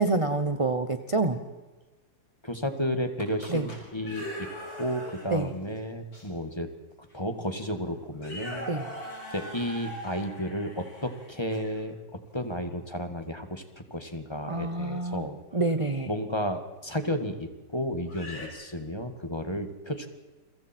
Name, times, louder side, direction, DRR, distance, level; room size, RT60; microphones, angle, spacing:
voice 1, 0.0-1.4 3.5-3.7 5.3-5.5 8.7-8.8 14.5-15.3 15.5-16.1, right 3 dB, 25° right, 8 dB, 0.8 m, -27 dB
voice 2, 2.4-4.5 4.8-6.7 7.1-8.7 9.3-12.0 12.3-13.6 13.9-15.4 16.1-20.1, equal, 15° left, 7 dB, 1.8 m, -32 dB
sound 1, 3.2-5.5 6.1-6.2 7.1-7.2 7.5-7.8 8.1-11.8 15.0-15.2 16.9-17.0 18.0-18.5, equal, 50° left, 6.5 m, -41 dB
30.0 x 23.5 x 4.5 m, 1.2 s
omnidirectional pair, 2.1 m